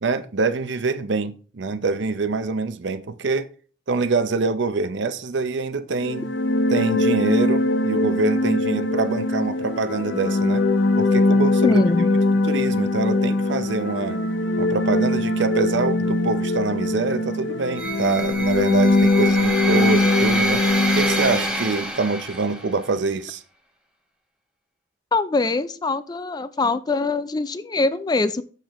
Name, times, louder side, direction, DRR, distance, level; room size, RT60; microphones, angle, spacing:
voice 1, 0.0-3.5 3.9-6.3 6.7-10.6 11.0-11.8 12.4-14.2 14.6-20.6 20.9-23.4, right 3 dB, 75° right, 0.6 m, -25 dB
sound 1, 6.0-21.7, left 2 dB, 75° left, 0.6 m, -21 dB
voice 2, 11.6-12.1 25.1-28.4, left 3 dB, 20° left, 0.3 m, -23 dB
wraith's cymbal, 17.8-22.8, right 2 dB, 5° right, 1.1 m, -27 dB
7.7 x 6.5 x 3.1 m
head